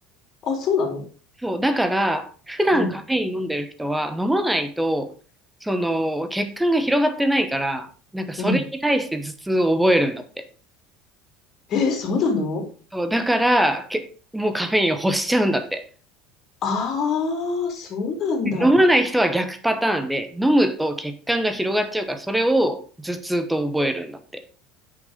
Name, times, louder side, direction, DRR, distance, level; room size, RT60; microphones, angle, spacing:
voice 1, 0.4-1.0 2.7-2.9 8.4-8.6 11.7-12.6 16.6-18.7, left 4 dB, 35° left, 3 dB, 3.4 m, -24 dB
voice 2, 1.4-5.1 5.6-7.9 8.1-10.4 12.9-14.1 14.3-15.8 18.4-24.2, right 1 dB, 5° right, 10 dB, 1.0 m, -22 dB
9.6 x 6.5 x 5.0 m, 0.39 s
cardioid pair, 155°, 0 cm